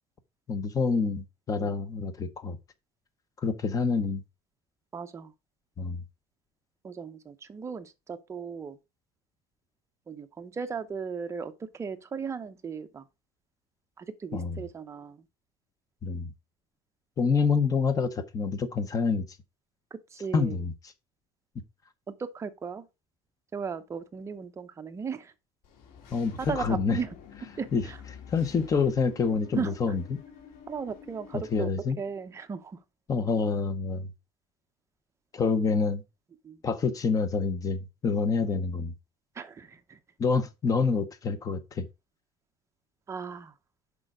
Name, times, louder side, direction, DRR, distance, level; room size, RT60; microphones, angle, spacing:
voice 1, 0.5-2.6 3.4-4.2 5.8-6.0 14.3-14.7 16.0-16.3 17.2-19.3 20.3-20.7 26.1-27.0 27.7-27.9 28.3-30.2 31.3-32.0 33.1-34.1 35.3-36.0 36.6-38.9 40.2-41.9, left 5 dB, 25° left, 0.9 m, -27 dB
voice 2, 4.9-5.3 6.8-8.8 10.1-13.0 14.0-15.2 19.9-20.5 22.2-22.8 23.5-25.3 26.4-27.1 27.6-28.0 29.6-29.7 30.7-31.7 32.0-32.8 36.4-36.6 39.4-40.0 43.1-43.5, right 6 dB, 20° right, 0.7 m, -36 dB
Engine / Mechanisms, 25.6-31.6, left 8 dB, 90° left, 2.1 m, -48 dB
6.7 x 4.9 x 4.8 m
cardioid pair, 170°, 15 cm